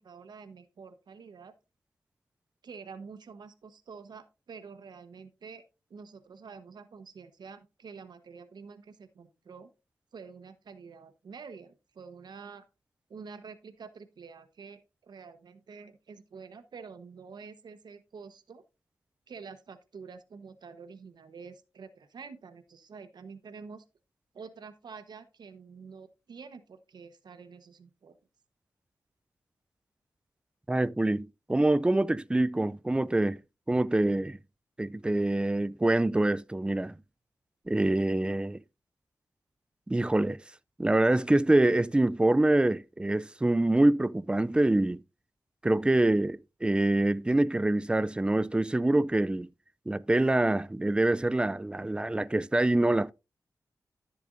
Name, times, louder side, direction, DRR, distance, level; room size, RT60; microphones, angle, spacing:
voice 1, 0.0-1.5 2.6-5.6 5.9-9.7 10.1-12.6 13.1-18.6 19.3-23.8 24.3-28.2, right 5 dB, 75° right, 1.1 m, -48 dB
voice 2, 30.7-33.4 33.7-34.4 34.8-37.0 37.7-38.6 39.9-40.4 40.8-45.0 45.6-49.5 49.9-53.1, right 2 dB, 15° right, 0.4 m, -25 dB
13.5 x 6.9 x 2.6 m
cardioid pair, 80°, 7 cm